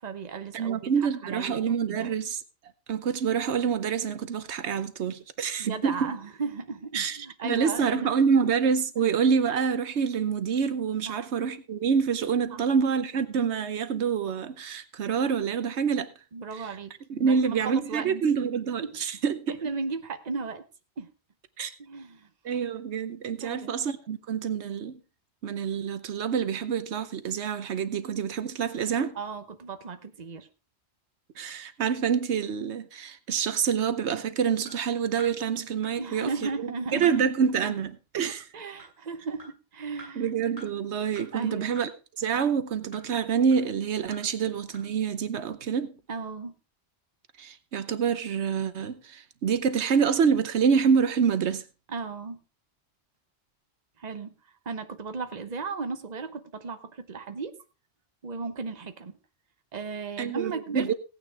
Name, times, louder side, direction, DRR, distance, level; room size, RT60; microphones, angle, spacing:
voice 1, 0.0-0.9 1.2-2.1 5.6-8.5 9.0-9.1 11.1-11.3 12.5-12.6 16.3-18.1 18.8-19.0 19.5-20.6 21.0-21.1 21.8-22.3 23.4-23.8 29.1-30.5 36.0-37.7 38.2-40.2 41.3-41.8 46.1-46.6 51.9-52.4 54.0-54.3 54.6-57.5 58.2-59.2 59.7-60.9, right 4 dB, 40° right, 1.1 m, -36 dB
voice 2, 0.5-2.4 2.9-6.1 6.9-7.2 7.4-16.1 17.1-19.6 21.6-21.7 22.4-25.0 25.4-29.1 31.4-38.4 40.2-41.9 42.2-45.9 47.4-51.6 60.2-60.9, right 6 dB, 85° right, 1.2 m, -27 dB
sound 1, 34.6-34.7 35.2-35.3 35.8-35.9 36.4-36.5 37.0-37.2 37.6-37.7 38.2-38.3 38.8-38.9 39.4-39.5 40.0-40.1 40.6-40.7 41.2-41.3 41.8-41.9 42.3-42.4 42.9-43.0 43.5-43.6 44.1-44.2 44.7-44.8, right 1 dB, 35° left, 8.3 m, -45 dB
17.0 x 9.4 x 3.5 m
omnidirectional pair, 1.1 m